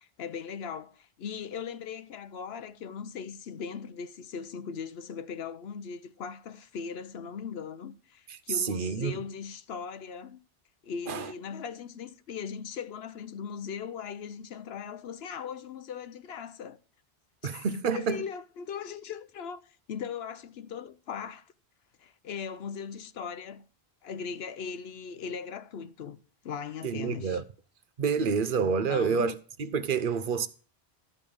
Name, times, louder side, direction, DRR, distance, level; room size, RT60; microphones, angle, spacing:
voice 1, 0.0-10.4 10.8-16.8 17.4-21.5 22.0-23.6 24.0-26.2 26.4-27.4 28.5-29.4, left 6 dB, 75° left, 0.9 m, -39 dB
voice 2, 8.6-9.2 11.1-11.3 17.4-18.2 26.8-27.4 28.0-29.3 29.6-30.5, right 6 dB, 55° right, 0.9 m, -28 dB
13.5 x 5.4 x 7.0 m
omnidirectional pair, 1.1 m